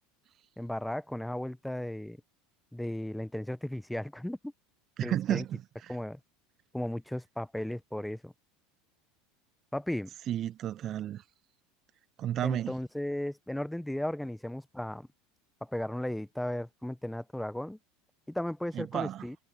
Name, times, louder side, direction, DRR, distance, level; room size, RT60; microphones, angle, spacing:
voice 1, 0.6-2.2 2.7-4.5 5.0-5.4 5.9-6.2 6.7-8.3 9.7-10.1 12.4-15.1 15.6-17.8 18.3-19.3, left 1 dB, 5° left, 0.9 m, -35 dB
voice 2, 5.0-6.0 10.3-11.2 12.2-12.7 18.7-19.3, right 11 dB, 45° right, 0.5 m, -32 dB
hypercardioid pair, 80°, 0 cm